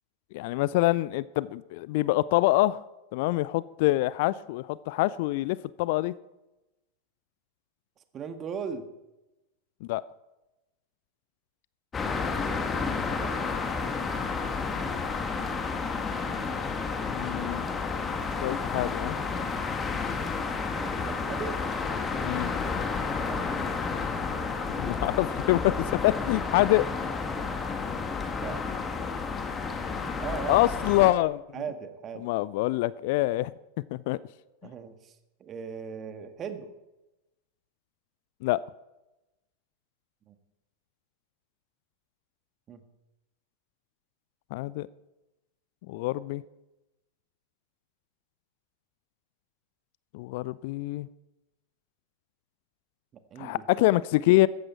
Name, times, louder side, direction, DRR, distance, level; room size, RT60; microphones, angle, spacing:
voice 1, 0.3-2.8 3.1-6.1 9.8-10.0 17.0-17.6 18.4-19.1 22.2-22.5 24.8-26.9 30.5-31.4 32.2-33.5 33.9-34.2 38.4-38.6 44.5-44.9 45.9-46.4 50.1-51.1 53.4-54.5, left 18 dB, 50° left, 20 dB, 0.4 m, -25 dB
voice 2, 8.1-8.9 12.5-13.4 20.7-21.8 23.0-23.7 24.9-25.1 28.4-28.8 30.2-31.1 31.5-32.4 34.6-35.1 35.4-36.7 40.3-40.4 42.7-42.8 53.3-53.6, right 6 dB, 30° right, 8 dB, 1.7 m, -39 dB
sound 1, 11.9-31.1, left 4 dB, 20° left, 1.7 m, -31 dB
15.5 x 14.0 x 4.5 m, 0.98 s
figure-of-eight pair, 90°, 0 cm